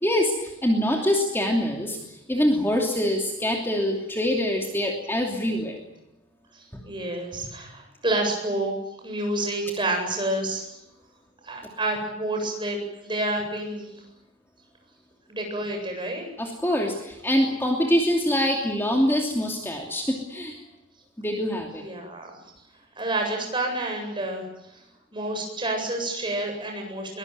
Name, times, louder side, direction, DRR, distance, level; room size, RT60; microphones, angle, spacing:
voice 1, 0.0-5.8 16.4-20.6 21.2-21.8, equal, 10° left, 1 dB, 2.9 m, -24 dB
voice 2, 6.5-8.7 9.0-10.6 11.4-12.8 13.0-13.9 15.3-16.2 21.8-22.4 23.0-24.4 25.1-27.2, right 1 dB, 25° right, 2 dB, 7.9 m, -29 dB
23.0 x 22.0 x 9.4 m, 0.90 s
head